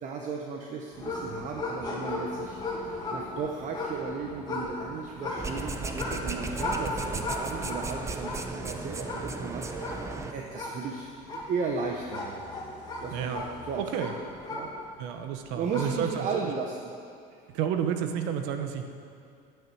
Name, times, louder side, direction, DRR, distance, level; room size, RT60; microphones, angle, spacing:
voice 1, 0.0-11.1 11.5-12.4 13.0-13.8 14.5-14.7 15.6-16.9 17.3-17.4, right 5 dB, 40° right, 2 dB, 1.0 m, -35 dB
sound 1, 0.9-15.1 15.5-16.1, left 2 dB, 20° left, 2.3 m, -37 dB
sound 2, 5.3-10.3, right 3 dB, 15° right, 0.8 m, -35 dB
voice 2, 13.1-13.4 13.8-14.1 15.0-16.3 17.5-18.9, right 8 dB, 70° right, 7 dB, 1.1 m, -30 dB
9.2 x 9.0 x 7.1 m, 2.4 s
cardioid pair, 125°, 18 cm